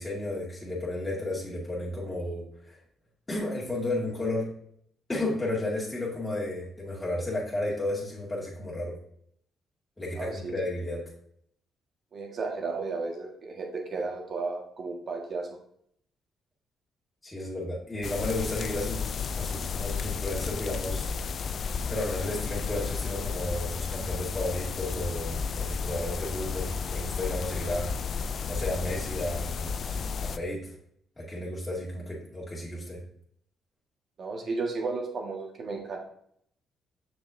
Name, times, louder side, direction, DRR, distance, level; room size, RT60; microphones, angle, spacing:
voice 1, 0.0-2.8 3.3-4.5 5.1-9.0 10.0-11.0 17.2-21.1 21.9-27.9 28.5-29.7 30.2-30.7 31.2-33.0, left 1 dB, 15° left, -6 dB, 1.9 m, -33 dB
voice 2, 10.1-10.5 12.1-15.5 34.2-36.0, right 3 dB, 50° right, 1 dB, 1.7 m, -33 dB
sound 1, 18.0-30.4, left 6 dB, 55° left, 0.3 m, -33 dB
6.8 x 5.9 x 2.7 m, 0.67 s
cardioid pair, 90°, 0 cm